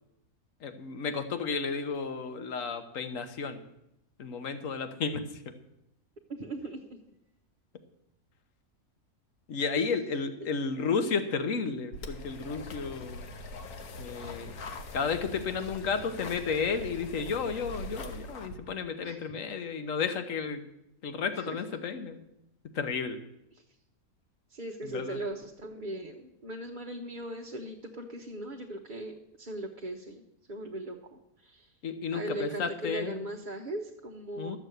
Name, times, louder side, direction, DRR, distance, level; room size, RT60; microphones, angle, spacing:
voice 1, 0.6-3.6 4.2-5.2 9.5-13.3 14.0-14.5 14.9-20.6 21.0-22.2 22.7-23.2 24.8-25.2 31.8-33.2 34.4-34.6, left 5 dB, 65° left, 9 dB, 1.4 m, -32 dB
voice 2, 6.3-7.0 9.8-9.9 10.4-10.5 19.0-19.3 21.3-21.6 23.5-23.6 24.5-31.7 32.1-34.6, right 1 dB, 35° right, 1 dB, 1.0 m, -39 dB
sound 1, 11.9-18.5, left 2 dB, 90° left, 1.6 m, -42 dB
13.0 x 7.5 x 7.9 m, 0.84 s
omnidirectional pair, 1.5 m